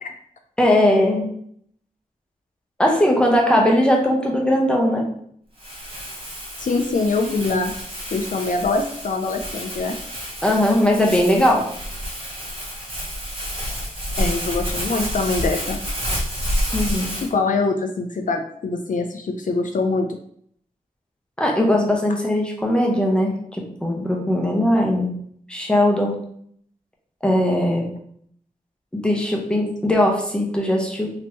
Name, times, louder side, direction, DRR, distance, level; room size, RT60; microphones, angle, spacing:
voice 1, 0.6-1.3 2.8-5.0 10.4-11.6 16.7-17.1 21.4-23.3 23.8-25.1 25.5-26.2 27.2-27.9 28.9-31.1, left 1 dB, 5° left, -1 dB, 0.7 m, -19 dB
Crumpling crinkling, 5.6-17.3, equal, 40° right, 1.3 m, -29 dB
voice 2, 6.6-7.7 8.1-10.0 14.2-15.8 17.2-20.1, left 3 dB, 65° left, 4 dB, 0.4 m, -23 dB
3.4 x 2.8 x 2.9 m, 0.65 s
wide cardioid pair, 100°, 15 cm